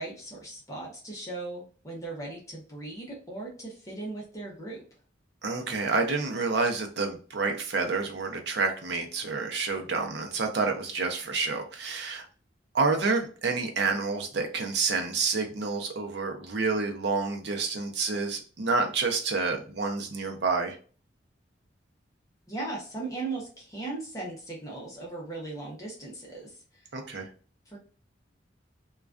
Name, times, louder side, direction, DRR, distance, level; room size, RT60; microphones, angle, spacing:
voice 1, 0.0-4.8 22.5-26.8 27.7-27.8, right 2 dB, 20° left, -3 dB, 0.6 m, -38 dB
voice 2, 5.4-12.3 12.7-20.8 26.9-27.3, right 4 dB, 65° right, 4 dB, 0.6 m, -28 dB
2.3 x 2.2 x 2.3 m, 0.39 s
head